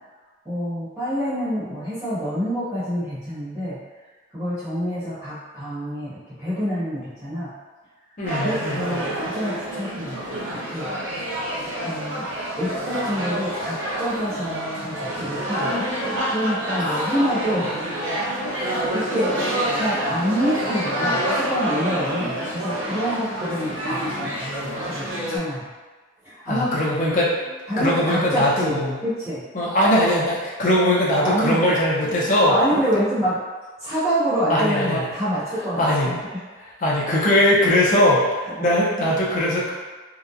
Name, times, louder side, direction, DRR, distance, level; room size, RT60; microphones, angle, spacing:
voice 1, 0.4-3.8 4.3-7.5 8.3-11.1 11.8-12.3 12.6-15.9 16.3-17.8 18.5-25.7 26.2-26.9 27.7-29.4 31.2-31.7 32.4-33.4 33.8-36.4 38.5-38.7, equal, 10° right, -15 dB, 1.0 m, -27 dB
voice 2, 8.2-9.0 16.8-17.1 26.5-27.3 27.8-29.0 29.5-32.5 34.5-35.1 35.8-36.1 36.8-39.7, left 1 dB, 40° left, -6 dB, 0.5 m, -20 dB
sound 1, 8.3-25.4, equal, 70° right, 0.6 m, -27 dB
2.8 x 2.1 x 2.4 m, 1.3 s
head